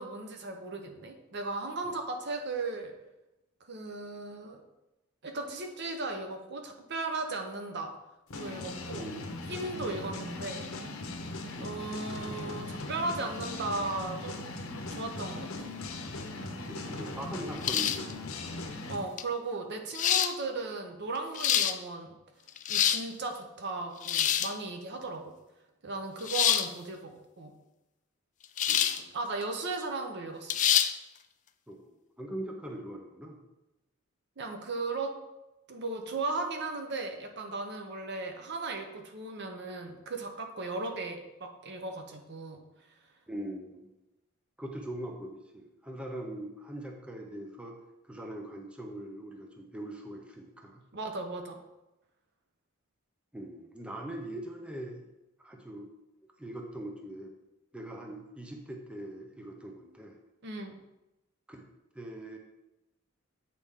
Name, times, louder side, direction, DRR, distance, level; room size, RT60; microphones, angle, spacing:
voice 1, 0.0-2.9 3.7-4.6 5.2-7.9 8.4-9.1 9.5-10.7 11.6-14.4 14.9-15.7 18.9-22.2 22.7-25.3 25.8-27.5 29.0-30.6 34.4-35.1 35.7-42.6 50.9-51.6 60.4-60.8, right 3 dB, 55° right, 4 dB, 0.8 m, -36 dB
sound 1, 8.3-19.1, left 2 dB, 80° left, 0.9 m, -39 dB
voice 2, 9.0-9.4 9.9-10.0 11.6-11.8 16.7-18.6 28.7-29.1 31.7-33.4 43.3-43.9 44.6-47.8 48.1-50.8 53.3-55.0 55.4-55.9 56.4-57.3 57.7-60.2 61.5-61.6 61.9-62.4, right 1 dB, 5° right, 1 dB, 0.6 m, -42 dB
sound 2, 17.6-18.1 19.2-19.3 19.9-20.3 21.2-21.7 22.5-23.0 24.0-24.5 26.3-26.7 28.6-29.0 29.4-29.5 30.5-30.9, left 10 dB, 35° left, 0.3 m, -26 dB
8.3 x 4.2 x 3.6 m, 0.96 s
head